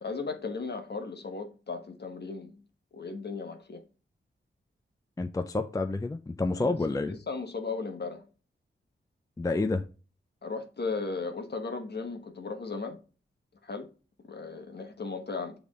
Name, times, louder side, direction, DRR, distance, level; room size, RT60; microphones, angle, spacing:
voice 1, 0.0-2.6 2.9-3.8 6.6-6.8 7.0-8.2 10.4-13.0 13.6-13.9 14.2-15.5, left 4 dB, 55° left, 1.1 m, -36 dB
voice 2, 5.2-7.2 9.4-9.8, left 3 dB, 15° left, 0.4 m, -29 dB
7.6 x 3.4 x 3.6 m
wide cardioid pair, 90°, 21 cm